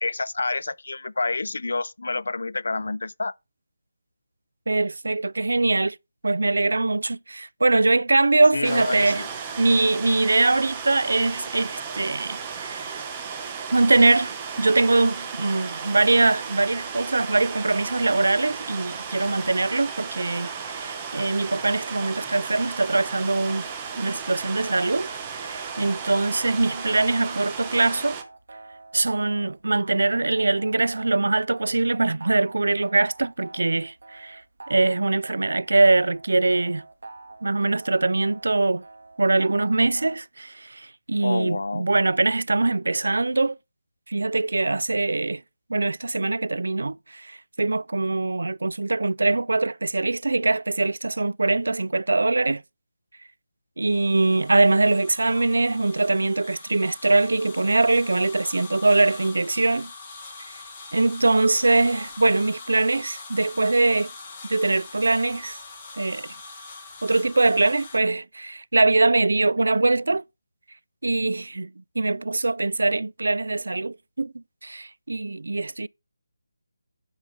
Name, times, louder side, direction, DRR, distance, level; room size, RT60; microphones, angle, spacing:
voice 1, 0.0-3.3 8.5-9.3 41.2-41.9 55.3-55.5, left 3 dB, 60° left, 0.5 m, -28 dB
voice 2, 4.7-6.0 6.2-9.2 9.6-13.0 13.7-23.7 24.0-28.2 28.9-34.4 34.7-36.8 37.4-38.8 39.2-43.6 44.1-45.4 45.7-52.6 53.8-59.9 60.9-64.1 64.5-65.6 65.9-66.3 67.0-70.2 71.0-75.9, right 2 dB, 75° right, 0.5 m, -22 dB
sound 1, 8.6-28.2, right 6 dB, 10° right, 0.9 m, -35 dB
sound 2, 24.5-40.2, right 2 dB, 60° right, 1.5 m, -46 dB
sound 3, 53.9-68.0, left 4 dB, 10° left, 1.6 m, -43 dB
11.5 x 4.9 x 5.2 m
figure-of-eight pair, 175°, 0 cm